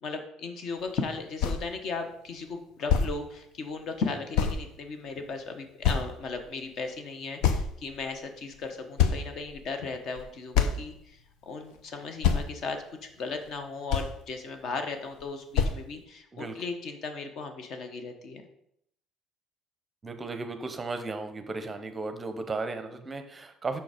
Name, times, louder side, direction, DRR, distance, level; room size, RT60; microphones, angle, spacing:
voice 1, 0.0-11.2 11.5-18.5, left 4 dB, 45° left, 6 dB, 1.0 m, -36 dB
sound 1, 1.1-1.2 1.4-1.6 2.5-2.6 2.9-3.1 4.4-4.6 5.2-5.3 5.8-6.4 7.4-8.0 8.5-8.6 9.0-9.6 10.2-10.3 10.5-10.9 11.8-11.9 12.2-12.5 13.5-13.6 13.9-14.2 15.2-15.3 15.6-15.8, left 7 dB, 90° left, 0.7 m, -25 dB
voice 2, 20.0-23.8, right 3 dB, 15° right, 8 dB, 0.7 m, -35 dB
6.9 x 5.8 x 5.0 m, 0.73 s
cardioid pair, 165°, 0 cm